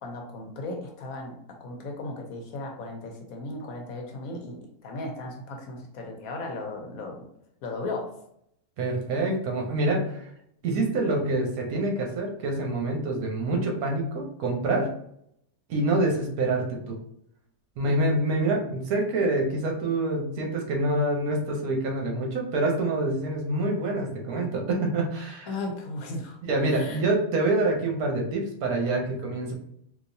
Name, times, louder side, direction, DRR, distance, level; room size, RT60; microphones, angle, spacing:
voice 1, 0.0-7.3 7.6-8.2 17.8-18.0 25.5-26.4 26.6-27.0, left 2 dB, 70° left, 2 dB, 1.1 m, -36 dB
voice 2, 8.8-10.3 10.6-14.9 15.7-17.0 17.8-25.5 26.5-29.5, right 2 dB, 70° right, 1 dB, 1.3 m, -26 dB
3.8 x 2.7 x 2.6 m, 0.72 s
omnidirectional pair, 1.6 m